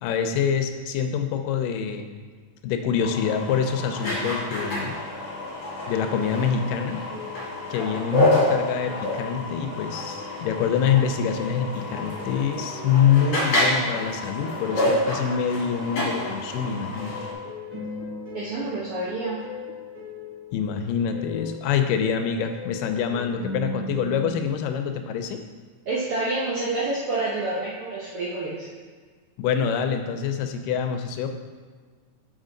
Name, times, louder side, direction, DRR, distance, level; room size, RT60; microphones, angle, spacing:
voice 1, 0.0-2.1 2.6-5.0 5.9-7.0 7.7-17.1 20.5-25.4 29.4-31.3, left 7 dB, 90° left, 7 dB, 2.2 m, -25 dB
sound 1, 3.0-17.3, left 1 dB, 40° left, 2.1 m, -28 dB
sound 2, 6.6-24.5, left 2 dB, 15° right, 1.5 m, -40 dB
voice 2, 18.3-19.4 25.9-28.7, right 2 dB, 75° right, -6 dB, 1.3 m, -28 dB
6.3 x 5.7 x 3.8 m, 1.5 s
omnidirectional pair, 3.8 m